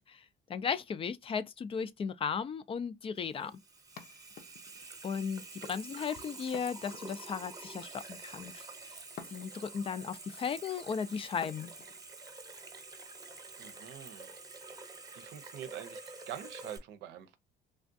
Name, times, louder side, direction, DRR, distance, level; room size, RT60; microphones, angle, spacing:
voice 1, 0.5-3.6 5.0-8.6 9.3-11.7, left 6 dB, 35° left, 0.4 m, -36 dB
Water tap faucet / Sink (filling or washing), 3.2-16.8, right 3 dB, 20° right, 0.9 m, -48 dB
sound 1, 4.0-4.9 6.5-7.5 9.2-9.8 11.4-12.0, left 7 dB, 70° left, 0.8 m, -50 dB
voice 2, 13.6-14.3 15.1-16.0 16.3-17.4, right 10 dB, 90° right, 0.7 m, -45 dB
3.3 x 2.4 x 2.5 m
cardioid pair, 110°, 17 cm